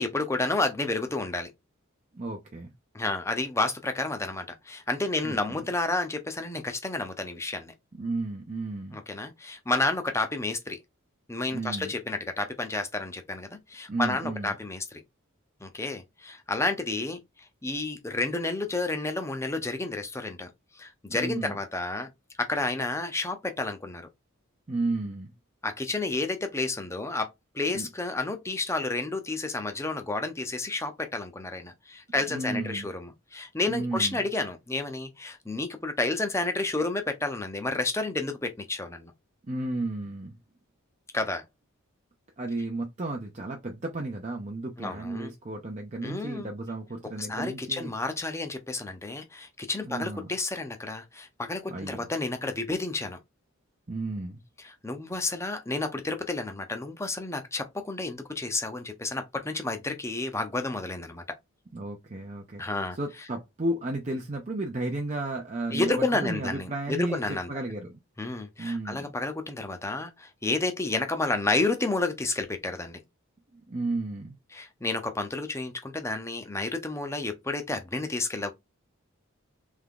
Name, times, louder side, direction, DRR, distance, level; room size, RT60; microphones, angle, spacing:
voice 1, 0.0-1.5 2.9-7.7 9.1-10.8 11.3-15.0 15.6-17.2 17.6-20.5 20.8-22.1 22.4-24.1 25.6-39.1 41.1-41.4 44.8-45.3 46.0-46.5 47.3-53.2 54.7-61.2 62.6-63.0 65.7-67.5 68.2-73.0 74.5-78.5, left 2 dB, 15° left, 0.7 m, -30 dB
voice 2, 2.1-2.7 5.2-5.7 7.9-9.0 11.5-11.9 13.9-14.6 21.1-21.6 24.7-25.3 27.7-27.9 32.3-32.9 33.7-34.2 39.5-40.4 42.4-47.9 49.8-50.3 51.7-52.1 53.9-54.4 61.7-68.0 68.6-69.1 73.5-74.3, right 2 dB, 35° right, 0.6 m, -33 dB
3.6 x 3.4 x 3.7 m
head